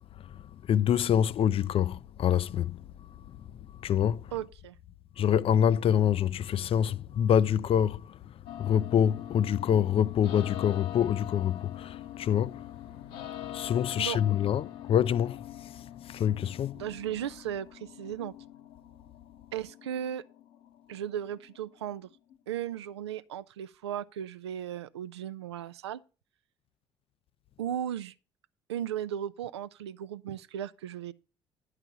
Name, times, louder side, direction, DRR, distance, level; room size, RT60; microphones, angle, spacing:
voice 1, 0.2-2.8 3.3-3.4 3.8-4.3 5.2-8.2 8.6-12.7 13.4-16.8, left 9 dB, 45° left, 0.4 m, -26 dB
voice 2, 4.3-4.8 14.0-14.2 16.7-18.3 19.5-20.2 20.9-22.1 22.5-26.0 27.6-28.1 28.7-31.1, right 10 dB, 85° right, 0.4 m, -36 dB
sound 1, 8.5-22.4, left 12 dB, 70° left, 1.2 m, -44 dB
11.0 x 4.9 x 6.8 m
figure-of-eight pair, 50°, 14 cm